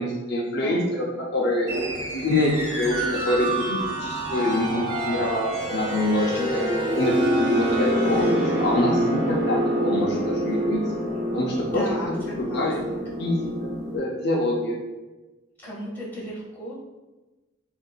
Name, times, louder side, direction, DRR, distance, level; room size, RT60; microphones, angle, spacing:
voice 1, 0.0-1.7 2.1-6.6 6.9-10.8 11.3-12.8 13.2-14.8, left 1 dB, 55° left, -2 dB, 0.5 m, -26 dB
voice 2, 0.5-0.8 6.3-6.9 11.2-11.3 11.6-12.9 15.6-16.8, equal, 10° left, -8 dB, 1.4 m, -35 dB
sound 1, 1.7-14.0, equal, 60° right, 1.3 m, -26 dB
6.3 x 2.5 x 2.3 m, 1.2 s
head